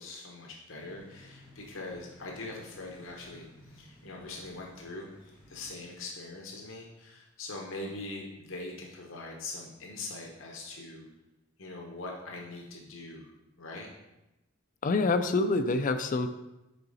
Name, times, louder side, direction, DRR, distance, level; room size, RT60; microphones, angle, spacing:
voice 1, 0.0-11.1 11.6-13.3 13.6-13.9, left 2 dB, 70° left, 0 dB, 1.0 m, -42 dB
sound 1, 0.8-5.8, left 1 dB, 5° right, 2.2 m, -56 dB
voice 2, 14.8-16.3, left 3 dB, 40° left, 8 dB, 0.4 m, -26 dB
6.8 x 4.8 x 4.0 m, 0.97 s
head